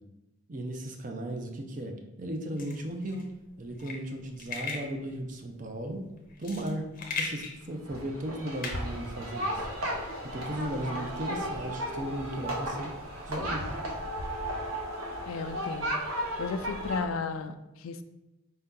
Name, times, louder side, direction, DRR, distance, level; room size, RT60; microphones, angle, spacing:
voice 1, 0.5-3.3 3.6-6.1 6.4-6.9 7.2-9.7 10.3-12.9 13.3-13.7, right 1 dB, 40° right, 4 dB, 0.5 m, -36 dB
sound 1, 2.6-9.8, left 4 dB, 40° left, 0.6 m, -39 dB
sound 2, 7.9-17.0, equal, 85° right, 0.9 m, -35 dB
voice 2, 15.3-18.0, left 4 dB, 85° left, 10 dB, 0.4 m, -35 dB
4.4 x 2.7 x 3.6 m, 0.96 s
head